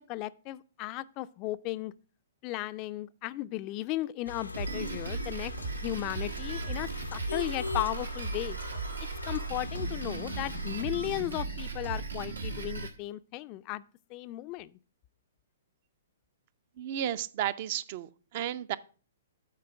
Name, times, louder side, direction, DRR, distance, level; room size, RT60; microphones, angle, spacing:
voice 1, 0.1-1.9 2.4-8.6 9.3-13.8 14.1-14.8, left 17 dB, 35° left, 0.3 m, -35 dB
sound 1, 4.3-10.8, left 4 dB, 90° left, 0.6 m, -41 dB
Drum kit, 4.5-12.9, right 4 dB, 90° right, 1.4 m, -36 dB
voice 2, 16.8-18.8, right 11 dB, 45° right, 0.5 m, -33 dB
8.4 x 4.4 x 5.9 m
figure-of-eight pair, 120°, 0 cm